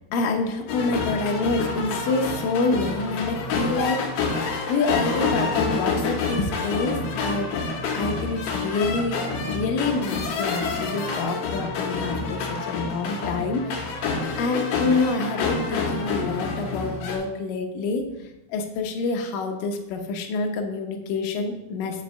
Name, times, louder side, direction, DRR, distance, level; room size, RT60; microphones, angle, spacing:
voice 1, 0.1-4.0 4.7-7.0 7.2-7.6 7.9-13.8 14.4-18.1 18.5-22.0, left 3 dB, 85° left, 3 dB, 1.9 m, -27 dB
sound 1, 0.7-17.2, left 4 dB, 70° left, 2.1 m, -28 dB
5.3 x 5.2 x 6.6 m, 0.90 s
omnidirectional pair, 5.0 m